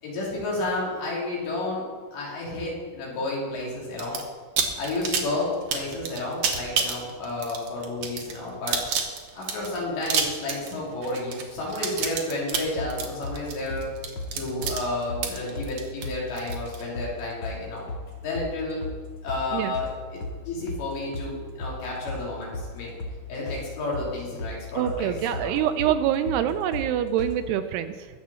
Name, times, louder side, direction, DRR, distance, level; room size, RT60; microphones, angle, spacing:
voice 1, 0.0-4.2 4.8-8.8 9.4-13.9 14.3-17.8 18.2-18.8 19.2-20.2 20.5-22.9 23.3-25.5, left 2 dB, 80° left, -5 dB, 5.8 m, -31 dB
sound 1, 4.0-4.2 4.6-16.8, right 6 dB, 65° right, 1.8 m, -29 dB
sound 2, 12.8-13.4 13.7-13.9 14.2-14.3 14.6-14.8 15.1-15.2 15.6-15.7 16.0-16.2 16.5-17.1 17.4-17.6 17.9-18.0 18.3-18.5 18.8-19.0 19.3-19.4 19.7-19.9 20.2-20.8 21.1-21.3 21.6-21.8 22.1-22.2 22.5-22.7 23.0-23.2 23.5-23.6 23.9-24.6 24.9-25.0 25.3-25.5 25.8-25.9 26.2-26.4 26.7-26.9 27.2-27.3, left 2 dB, 45° left, 3.0 m, -34 dB
voice 2, 24.8-28.1, right 10 dB, 85° right, 10 dB, 2.5 m, -25 dB
21.5 x 7.5 x 4.3 m, 1.5 s
omnidirectional pair, 4.9 m